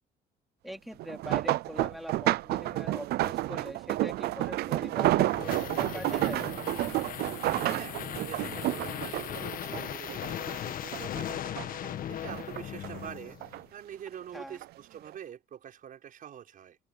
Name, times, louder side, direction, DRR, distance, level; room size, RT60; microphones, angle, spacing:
voice 1, 0.6-6.5 14.3-14.6, equal, ahead, 3.5 m, -42 dB
sound 1, 1.0-10.6 10.9-11.9 12.3-13.6 14.4-14.7 15.1-15.2, right 16 dB, 70° right, 0.6 m, -30 dB
sound 2, 4.8-13.6, left 10 dB, 55° left, 1.3 m, -38 dB
voice 2, 7.7-16.8, right 9 dB, 55° right, 6.2 m, -45 dB
cardioid pair, 110°, 17 cm